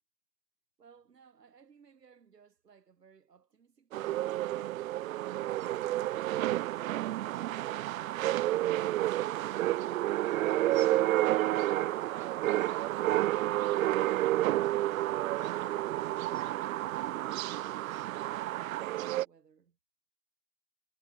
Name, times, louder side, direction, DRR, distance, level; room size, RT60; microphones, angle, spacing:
voice 1, 0.8-5.8 17.2-19.8, right 6 dB, 75° right, 6.6 m, -61 dB
sound 1, 3.9-19.2, right 15 dB, 55° right, 0.8 m, -30 dB
figure-of-eight pair, 100°, 48 cm